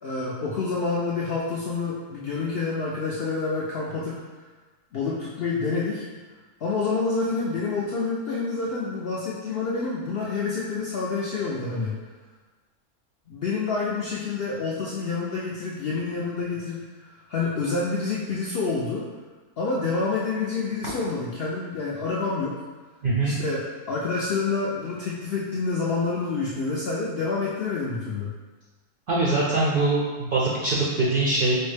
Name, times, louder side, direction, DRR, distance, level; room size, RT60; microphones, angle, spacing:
voice 1, 0.0-4.2 4.9-6.0 6.6-12.0 13.3-19.1 19.6-22.6 23.2-28.3, left 4 dB, 70° left, -6 dB, 0.5 m, -28 dB
voice 2, 23.0-23.3 29.1-31.6, right 2 dB, 70° right, -6 dB, 0.5 m, -23 dB
4.6 x 2.1 x 3.2 m, 1.3 s
omnidirectional pair, 1.5 m